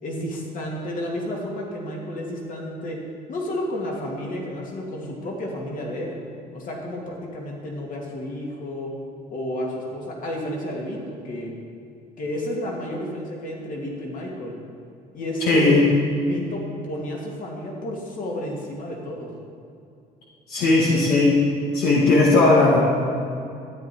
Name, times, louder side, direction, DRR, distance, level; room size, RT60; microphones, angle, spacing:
voice 1, 0.0-3.0 3.3-6.2 6.5-8.9 9.3-11.5 12.2-14.5 15.1-15.8 16.2-19.3, left 1 dB, 50° left, -2 dB, 2.6 m, -31 dB
voice 2, 15.4-15.9 20.5-21.4 21.7-22.8, left 3 dB, 70° left, -5 dB, 1.7 m, -17 dB
13.0 x 9.2 x 4.6 m, 2.5 s
cardioid pair, 110°, 17 cm